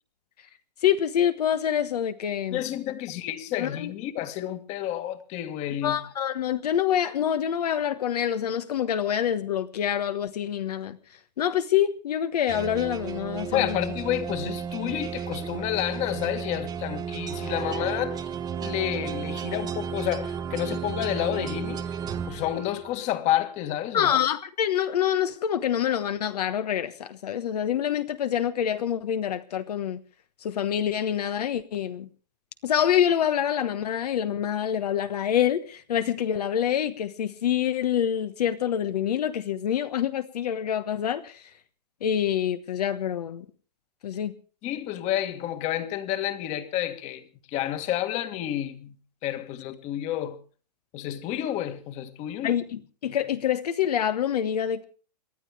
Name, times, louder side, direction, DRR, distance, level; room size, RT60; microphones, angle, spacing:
voice 1, 0.8-2.6 3.6-3.9 5.8-11.0 11.4-13.8 23.9-30.0 30.4-32.1 32.6-41.4 42.0-43.4 44.0-44.3 52.4-54.8, left 9 dB, 65° left, 1.2 m, -26 dB
voice 2, 2.5-6.0 13.5-18.2 18.6-22.0 22.2-24.1 44.6-47.2 47.5-49.0 49.2-50.4 50.9-52.6, left 12 dB, 30° left, 1.7 m, -30 dB
sound 1, 12.5-23.1, right 7 dB, 20° right, 1.1 m, -33 dB
29.0 x 12.0 x 3.5 m
hypercardioid pair, 130°, 21 cm